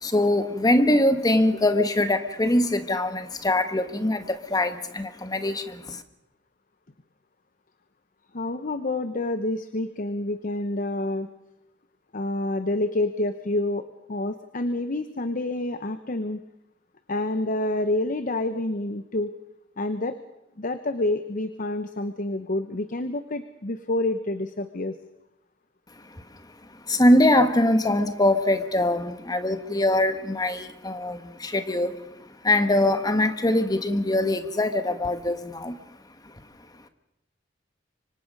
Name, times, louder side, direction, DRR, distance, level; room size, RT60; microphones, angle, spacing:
voice 1, 0.0-6.0 26.0-26.2 26.9-32.0 32.4-35.8, left 1 dB, 20° left, 9 dB, 1.3 m, -23 dB
voice 2, 8.3-11.3 12.1-16.4 17.1-19.4 19.8-20.2 20.6-25.0, left 2 dB, 45° left, 10 dB, 0.9 m, -28 dB
25.0 x 25.0 x 5.4 m, 0.90 s
head